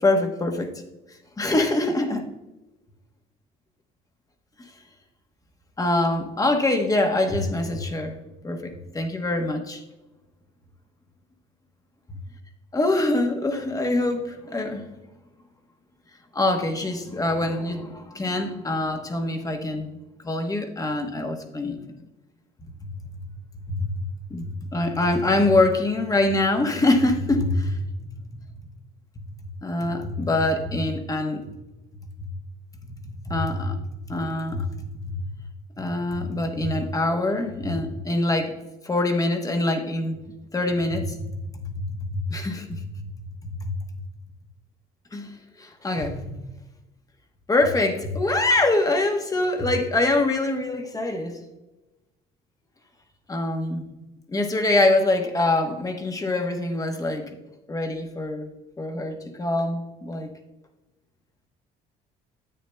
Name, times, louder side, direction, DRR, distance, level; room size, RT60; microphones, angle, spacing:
voice 1, 0.0-0.7 1.4-2.3 5.8-8.2 8.4-9.8 12.7-14.9 16.3-19.9 20.2-21.8 23.7-24.0 24.3-27.8 29.6-31.4 33.3-33.8 34.1-35.2 35.8-38.5 38.8-40.2 40.5-41.4 41.7-41.8 42.0-42.9 43.4-43.7 45.1-46.3 47.5-51.4 53.3-53.9 54.3-57.3 57.7-58.5 58.8-60.3, left 2 dB, 20° left, 5 dB, 1.1 m, -24 dB
10.0 x 8.2 x 2.2 m, 1.1 s
cardioid pair, 110°, 17 cm